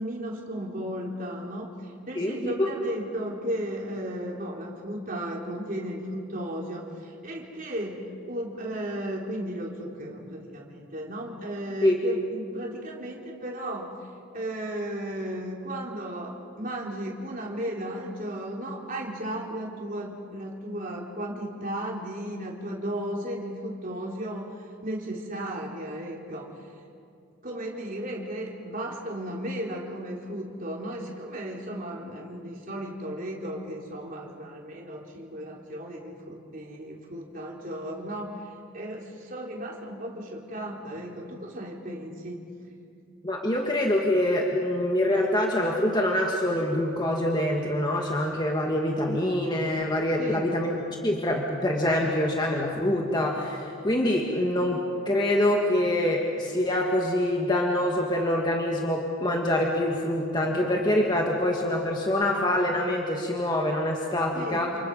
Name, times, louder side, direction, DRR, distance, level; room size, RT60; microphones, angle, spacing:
voice 1, 0.0-14.0 14.3-24.5 24.8-26.6 27.4-38.4 38.7-42.5 50.2-50.6 64.3-64.8, right 1 dB, 40° right, -2 dB, 3.8 m, -35 dB
voice 2, 2.2-2.5 11.8-12.0 43.2-50.7 51.0-64.7, left 1 dB, 20° left, 0 dB, 1.9 m, -25 dB
28.5 x 28.5 x 5.6 m, 2.4 s
head